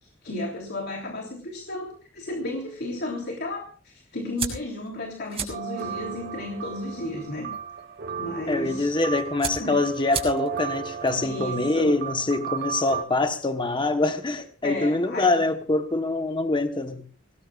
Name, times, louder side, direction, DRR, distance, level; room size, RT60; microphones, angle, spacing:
voice 1, 0.0-1.9 2.1-7.5 8.2-8.9 9.6-9.8 11.2-12.0 14.6-15.4, left 1 dB, 55° left, 1 dB, 3.2 m, -33 dB
sound 1, 4.4-12.8, right 6 dB, 30° right, 6.3 m, -39 dB
sound 2, 5.5-13.0, right 8 dB, 50° right, 1.2 m, -35 dB
voice 2, 8.5-17.0, left 2 dB, 25° left, 7 dB, 1.1 m, -24 dB
25.5 x 19.0 x 2.4 m, 0.37 s
head